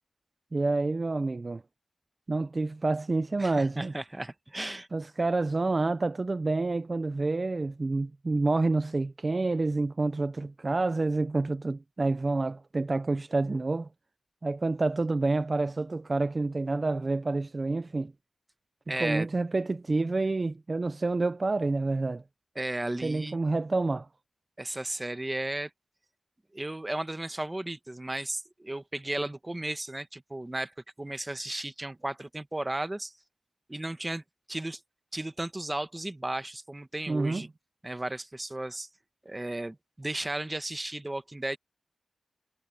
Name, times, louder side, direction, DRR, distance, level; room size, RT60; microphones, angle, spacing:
voice 1, 0.5-1.6 2.3-3.9 4.9-13.9 14.4-18.1 19.0-22.2 23.0-24.1 37.1-37.4, right 3 dB, 30° right, 0.5 m, -28 dB
voice 2, 3.4-4.9 18.9-19.3 22.5-23.4 24.6-25.7 26.5-33.1 33.7-34.2 34.5-34.8 35.1-37.5 37.8-38.9 39.2-41.6, right 1 dB, 15° right, 1.0 m, -34 dB
wide cardioid pair, 155°, 0 cm